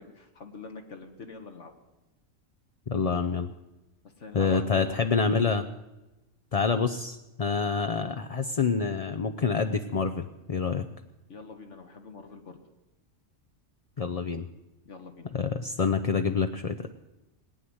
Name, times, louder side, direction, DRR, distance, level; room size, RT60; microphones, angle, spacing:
voice 1, 0.0-1.7 4.2-5.1 11.3-12.6 14.8-15.3, left 4 dB, 65° left, 4 dB, 1.7 m, -44 dB
voice 2, 2.9-3.5 4.3-5.6 6.5-10.9 14.0-14.5 15.3-16.9, left 5 dB, 45° left, 5 dB, 0.5 m, -27 dB
19.0 x 9.7 x 7.9 m, 1.0 s
omnidirectional pair, 1.4 m